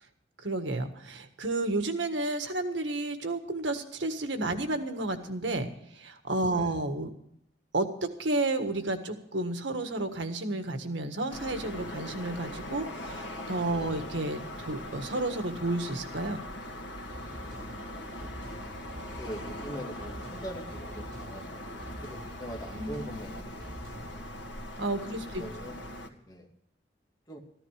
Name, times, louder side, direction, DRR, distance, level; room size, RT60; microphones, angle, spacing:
voice 1, 0.4-7.1 7.7-7.9 8.2-16.4 22.8-23.3 24.8-25.4, right 2 dB, 85° right, 7 dB, 1.6 m, -31 dB
sound 1, 11.3-26.1, left 1 dB, 85° left, 1.8 m, -41 dB
sound 2, 17.1-24.3, equal, 60° right, 6.4 m, -47 dB
voice 2, 19.2-23.8 25.1-25.2 25.4-25.8 26.3-26.5 27.3-27.4, equal, 20° left, 1 dB, 2.3 m, -43 dB
14.0 x 14.0 x 4.9 m, 0.73 s
head